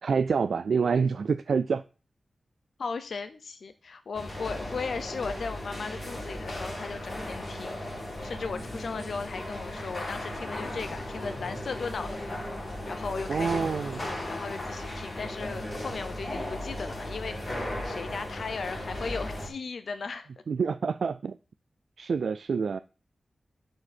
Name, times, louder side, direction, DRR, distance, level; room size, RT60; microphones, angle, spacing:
voice 1, 0.0-1.8 13.3-14.0 20.5-21.3 22.0-22.8, right 5 dB, 80° right, 12 dB, 0.3 m, -27 dB
voice 2, 2.8-12.4 12.9-13.6 14.3-20.3, left 4 dB, 75° left, 9 dB, 0.7 m, -37 dB
sound 1, 4.1-19.5, left 1 dB, 35° left, 3.6 m, -36 dB
11.0 x 4.9 x 4.3 m, 0.34 s
wide cardioid pair, 115°, 0 cm